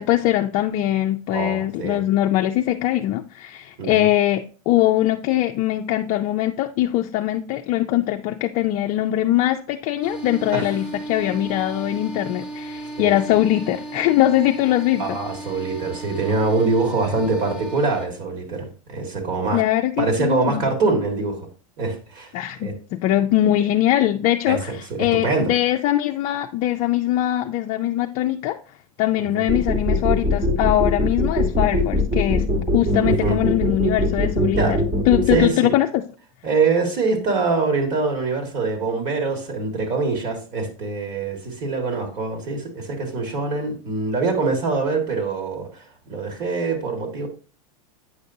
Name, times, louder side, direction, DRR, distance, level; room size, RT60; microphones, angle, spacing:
voice 1, 0.0-15.2 19.5-20.6 22.3-28.6 29.0-32.4 32.7-34.8 35.1-36.0, left 14 dB, 45° left, 0.4 m, -21 dB
voice 2, 1.3-2.0 3.8-4.1 10.5-10.7 13.0-13.2 15.0-19.6 20.0-21.5 21.8-22.3 22.6-22.8 24.5-25.5 29.2-29.4 32.9-33.4 34.6-34.8 35.3-35.7 36.4-47.3, right 3 dB, 45° right, 1.8 m, -24 dB
sound 1, 10.0-18.1, right 1 dB, 5° right, 1.1 m, -35 dB
sound 2, 29.5-35.4, left 1 dB, 30° right, 1.3 m, -21 dB
8.5 x 5.1 x 2.7 m
supercardioid pair, 130°, 18 cm